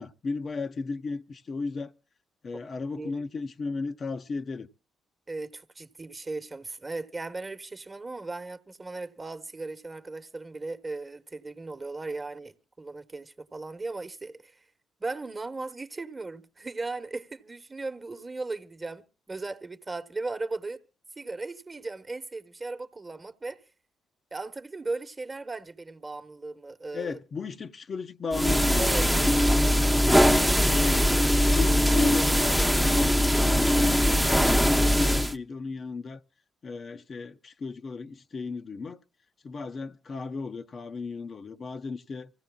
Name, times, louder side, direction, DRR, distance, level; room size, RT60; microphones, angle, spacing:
voice 1, 0.0-1.9 2.4-4.7 26.9-29.4 29.9-36.2 36.6-39.0 39.4-42.3, left 4 dB, 50° left, 0.7 m, -35 dB
voice 2, 5.3-14.6 15.0-20.8 21.2-23.6 24.3-27.2 28.8-29.1, right 3 dB, 30° right, 1.1 m, -37 dB
sound 1, 28.3-35.3, equal, ahead, 0.7 m, -21 dB
26.0 x 16.0 x 2.3 m
hypercardioid pair, 50°, 0 cm